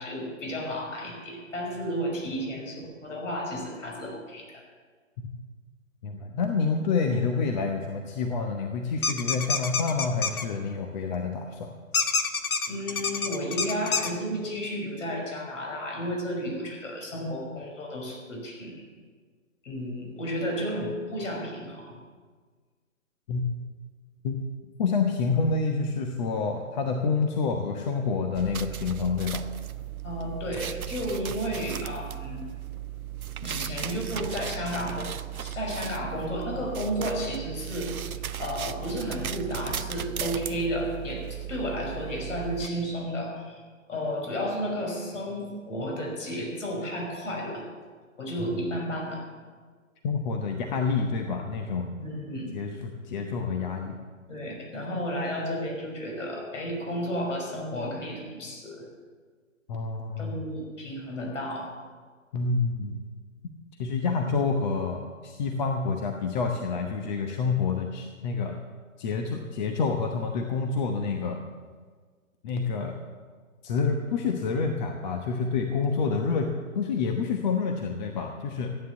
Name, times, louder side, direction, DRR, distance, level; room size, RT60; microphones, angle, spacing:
voice 1, 0.0-4.6 12.7-18.8 19.6-22.0 30.0-32.5 33.4-35.1 35.4-38.1 38.4-43.6 43.9-47.6 48.2-49.2 52.0-52.5 54.3-58.9 60.2-61.7, equal, 65° left, 0 dB, 5.8 m, -32 dB
voice 2, 6.0-11.7 23.3-23.4 24.2-24.4 24.8-29.4 48.4-48.7 50.0-52.0 52.5-54.0 59.7-60.4 62.3-63.0 63.8-68.6 69.0-71.4 72.4-73.0 73.6-78.8, left 4 dB, 30° left, 3 dB, 1.1 m, -28 dB
sound 1, 9.0-10.4 11.9-14.1, left 5 dB, 85° left, 1.4 m, -27 dB
sound 2, 28.3-42.7, right 10 dB, 85° right, 0.7 m, -36 dB
14.5 x 9.8 x 7.2 m, 1.6 s
hypercardioid pair, 140°, 42 cm